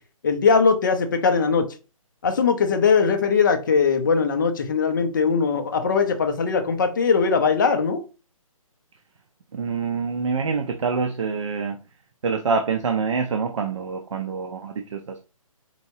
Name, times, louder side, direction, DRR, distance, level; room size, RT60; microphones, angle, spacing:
voice 1, 0.2-1.7 2.2-8.0, left 5 dB, 35° left, 0.5 m, -20 dB
voice 2, 9.5-11.8 12.2-15.2, right 5 dB, 60° right, 0.6 m, -26 dB
4.4 x 2.8 x 2.6 m
hypercardioid pair, 165°, 18 cm